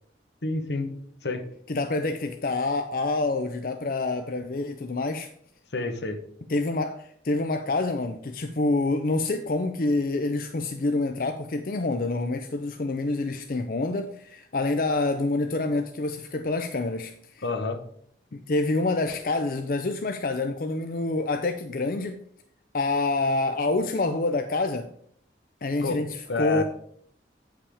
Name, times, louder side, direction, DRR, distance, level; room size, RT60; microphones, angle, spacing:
voice 1, 0.4-0.9 1.2-1.5 5.7-6.2 17.4-17.8 25.8-26.0 26.3-26.6, left 3 dB, 80° left, 1.1 m, -28 dB
voice 2, 1.7-5.3 6.5-17.4 18.3-22.2 22.7-24.9 25.6-26.6, left 2 dB, 50° left, 0.5 m, -27 dB
8.6 x 5.7 x 4.9 m
head